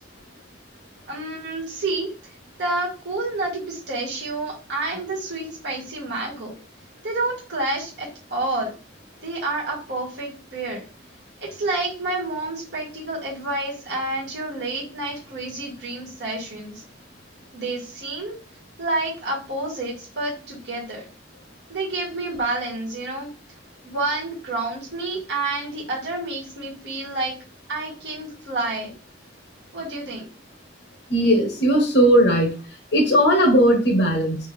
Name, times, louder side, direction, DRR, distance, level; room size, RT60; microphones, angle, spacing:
voice 1, 1.1-2.3 2.6-6.6 7.0-8.7 9.2-10.9 11.5-16.8 17.5-18.4 18.8-21.1 21.7-23.3 23.8-27.3 27.7-28.9 29.7-30.3, right 2 dB, 70° right, -4 dB, 1.8 m, -29 dB
voice 2, 31.1-32.5 32.9-34.4, equal, 65° left, 0 dB, 1.2 m, -17 dB
4.4 x 2.7 x 3.6 m, 0.36 s
head